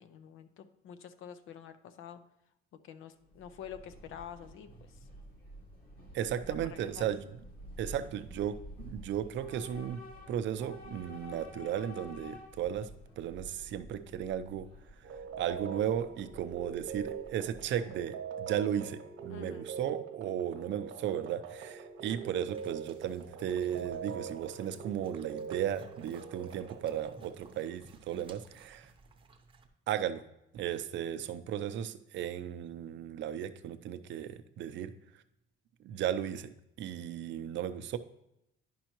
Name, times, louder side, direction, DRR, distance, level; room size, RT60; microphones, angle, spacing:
voice 1, 0.0-2.2 2.8-5.1 6.7-7.1 19.3-19.7, left 8 dB, 70° left, 11 dB, 0.6 m, -48 dB
Train / Subway metro underground, 3.2-18.0, equal, 45° left, 1.7 m, -50 dB
voice 2, 6.1-7.2 7.8-10.0 10.3-12.9 13.2-14.7 15.4-28.9 29.9-30.2 30.5-34.9 35.8-36.5 36.8-38.0, right 10 dB, 60° right, 11 dB, 0.5 m, -35 dB
sound 1, 15.0-27.6, right 7 dB, 80° right, 1.0 m, -43 dB
sound 2, 21.8-29.7, right 3 dB, 25° right, 0.7 m, -56 dB
10.0 x 5.5 x 3.0 m, 0.84 s
cardioid pair, 150°, 21 cm